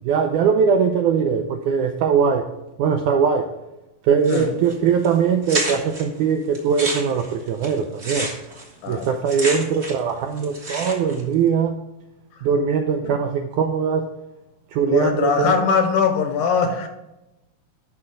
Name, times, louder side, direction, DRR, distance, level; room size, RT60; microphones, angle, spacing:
voice 1, 0.1-2.4 2.8-3.5 4.1-8.3 8.9-11.8 12.4-14.1 14.7-15.6, right 6 dB, 85° right, 5 dB, 1.8 m, -21 dB
sound 1, 4.2-4.7 5.0-5.1 5.4-6.0 6.5-10.1 10.4-11.2, right 2 dB, 40° right, 1.0 m, -29 dB
voice 2, 14.9-16.9, left 6 dB, 75° left, 7 dB, 2.0 m, -21 dB
12.0 x 6.0 x 3.8 m, 0.95 s
omnidirectional pair, 4.1 m